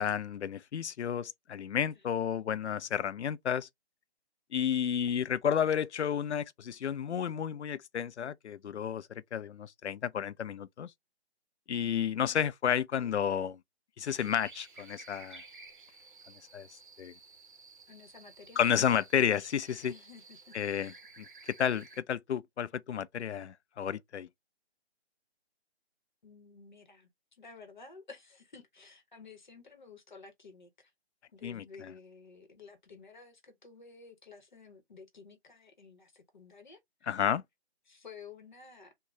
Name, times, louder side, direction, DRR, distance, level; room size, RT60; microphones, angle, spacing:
voice 1, 0.0-3.7 4.5-10.9 11.7-13.6 14.0-15.4 16.5-16.7 17.0-17.1 18.6-19.9 20.5-24.3 31.4-31.9 37.1-37.4, left 8 dB, 85° left, 0.5 m, -31 dB
sound 1, 14.0-22.0, right 3 dB, 50° right, 0.9 m, -54 dB
voice 2, 17.9-18.6 19.9-21.0 26.2-30.9 31.3-37.2 37.9-38.9, left 4 dB, 45° left, 0.9 m, -53 dB
3.7 x 2.2 x 3.1 m
figure-of-eight pair, 165°, 33 cm